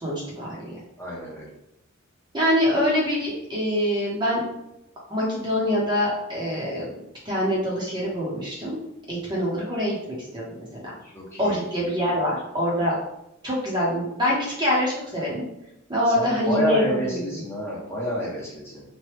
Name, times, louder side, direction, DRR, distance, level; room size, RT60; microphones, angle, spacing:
voice 1, 0.0-0.8 2.3-4.4 5.1-7.0 7.2-8.8 9.1-10.0 10.3-10.9 11.4-12.9 13.4-15.4 15.9-16.8 17.1-17.3, equal, 20° right, -5 dB, 0.8 m, -25 dB
voice 2, 1.0-1.5 11.0-11.6 12.0-12.2 16.0-18.8, equal, 10° left, -6 dB, 0.8 m, -29 dB
3.0 x 2.2 x 3.2 m, 0.85 s
head